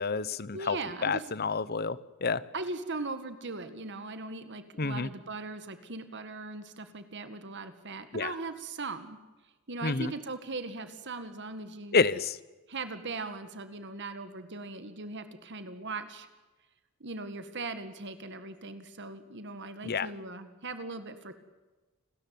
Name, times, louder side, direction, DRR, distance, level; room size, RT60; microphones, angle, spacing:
voice 1, 0.0-0.8 1.0-2.4 4.8-5.1 8.1-8.3 9.8-10.1 11.9-12.4 19.8-20.1, left 4 dB, 45° left, 18 dB, 0.9 m, -29 dB
voice 2, 0.5-1.3 2.5-9.2 9.7-12.0 12.7-16.3 17.0-21.3, right 3 dB, 55° right, 10 dB, 1.9 m, -39 dB
29.5 x 14.0 x 9.4 m, 1.2 s
head